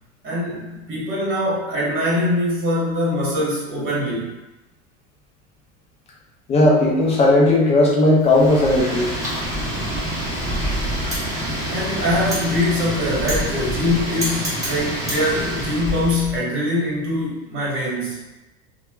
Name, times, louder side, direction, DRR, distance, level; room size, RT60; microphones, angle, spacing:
voice 1, 0.2-4.3 11.7-18.2, left 1 dB, 30° right, -6 dB, 1.2 m, -23 dB
voice 2, 6.5-9.1 10.6-10.7, left 2 dB, 15° left, -3 dB, 0.4 m, -16 dB
Wind, 8.2-16.4, equal, 10° right, 0.9 m, -26 dB
2.8 x 2.2 x 2.3 m, 1.0 s
supercardioid pair, 115°, 40 cm